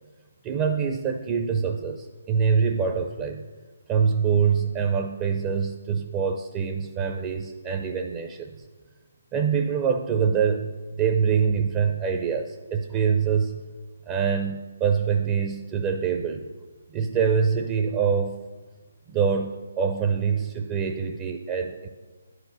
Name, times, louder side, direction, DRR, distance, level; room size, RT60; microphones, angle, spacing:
voice 1, 0.4-3.4 3.9-8.5 9.3-13.6 14.1-16.5 16.9-18.4 19.1-21.9, right 6 dB, 25° right, 4 dB, 0.5 m, -25 dB
9.2 x 4.8 x 6.3 m, 1.3 s
figure-of-eight pair, 145°, 0 cm